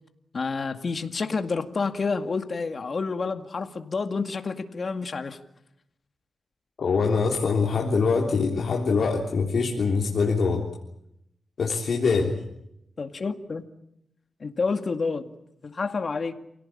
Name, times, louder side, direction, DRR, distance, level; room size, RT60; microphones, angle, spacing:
voice 1, 0.3-5.4 13.0-13.6 14.4-15.3 15.6-16.3, left 4 dB, 45° left, 7 dB, 2.1 m, -29 dB
voice 2, 6.8-10.6 11.6-12.4, left 4 dB, 70° left, -1 dB, 3.4 m, -23 dB
29.0 x 17.5 x 8.8 m, 0.80 s
wide cardioid pair, 100°, 0 cm